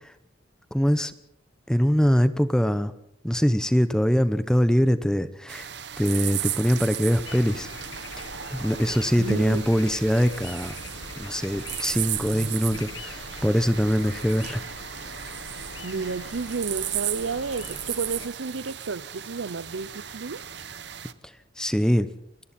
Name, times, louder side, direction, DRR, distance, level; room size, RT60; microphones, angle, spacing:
voice 1, 0.7-1.1 1.7-2.9 3.2-5.7 6.0-7.7 8.5-10.7 11.2-14.6 21.6-22.1, equal, 5° left, 0.9 m, -23 dB
sound 1, 5.5-21.1, right 11 dB, 60° right, 1.0 m, -35 dB
sound 2, 7.2-18.3, left 3 dB, 80° left, 1.6 m, -42 dB
voice 2, 9.2-9.6 12.3-12.8 15.8-20.6, right 4 dB, 85° right, 0.7 m, -32 dB
29.0 x 22.0 x 4.4 m
head